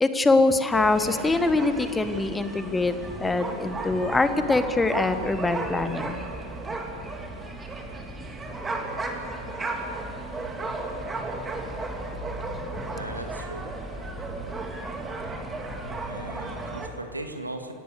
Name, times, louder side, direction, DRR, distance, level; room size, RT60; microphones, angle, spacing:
voice 1, 0.0-2.9 3.2-6.2 12.8-12.9, left 3 dB, 10° left, 10 dB, 1.4 m, -23 dB
sound 1, 0.7-16.9, right 2 dB, 15° right, 2.8 m, -34 dB
voice 2, 12.9-13.7 16.1-17.7, right 2 dB, 80° right, 5 dB, 2.2 m, -38 dB
28.0 x 17.5 x 6.8 m, 2.7 s
figure-of-eight pair, 90°, 0 cm